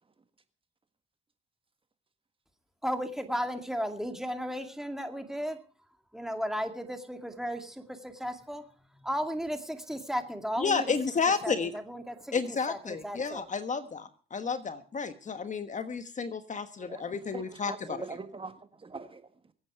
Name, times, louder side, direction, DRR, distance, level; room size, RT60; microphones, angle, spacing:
voice 1, 2.8-5.6 6.1-8.6 9.0-10.9 11.4-11.5 11.9-12.3 12.7-13.4, equal, ahead, 6 dB, 2.2 m, -34 dB
voice 2, 10.6-11.7 12.3-18.0, left 5 dB, 40° left, 10 dB, 1.4 m, -31 dB
voice 3, 16.8-19.5, right 4 dB, 25° right, 9 dB, 1.5 m, -43 dB
23.0 x 8.8 x 4.7 m, 0.39 s
cardioid pair, 90°, 20 cm